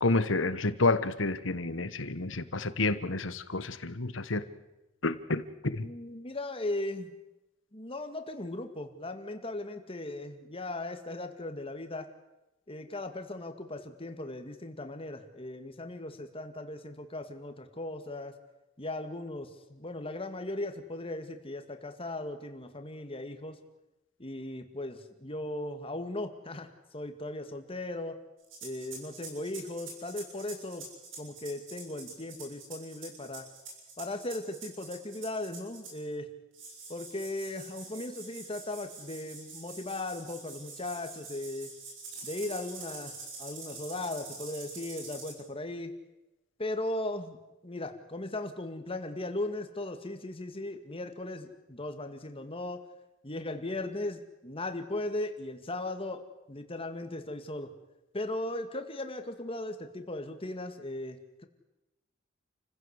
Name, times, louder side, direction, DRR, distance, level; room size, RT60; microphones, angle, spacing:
voice 1, 0.0-4.4 5.0-5.9, left 3 dB, 75° left, 13 dB, 1.4 m, -29 dB
voice 2, 5.8-7.1 7.7-12.1 12.7-18.4 18.8-23.6 24.2-28.2 28.6-30.8 31.2-33.5 34.0-36.3 36.9-41.7 42.2-45.9 46.6-47.4 47.6-52.9 53.2-57.7 58.1-61.5, left 2 dB, 30° left, 7 dB, 2.0 m, -37 dB
sound 1, 28.4-36.1 36.5-45.3, right 4 dB, 70° right, 7.2 m, -45 dB
29.0 x 15.5 x 8.2 m, 0.99 s
head